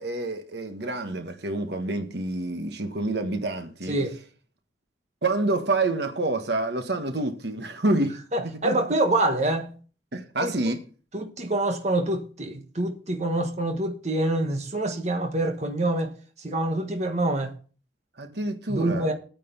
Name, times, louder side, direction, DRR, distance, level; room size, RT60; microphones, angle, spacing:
voice 1, 0.0-4.0 5.2-8.2 8.6-8.7 10.1-10.8 18.2-19.1, right 2 dB, 60° right, 1.4 m, -27 dB
voice 2, 8.3-9.7 10.4-10.7 11.1-16.1 16.4-17.5 18.7-19.1, right 1 dB, 35° right, 1.3 m, -26 dB
9.2 x 6.7 x 6.8 m
head